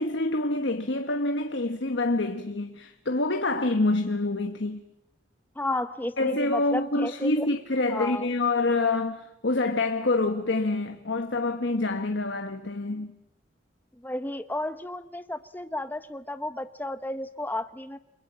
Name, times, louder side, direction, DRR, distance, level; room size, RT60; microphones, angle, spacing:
voice 1, 0.0-4.8 6.2-13.1, left 2 dB, 80° left, 1.3 m, -26 dB
voice 2, 5.6-7.5 7.9-8.3 14.0-18.0, left 1 dB, 10° left, 1.0 m, -32 dB
30.0 x 22.0 x 7.5 m
head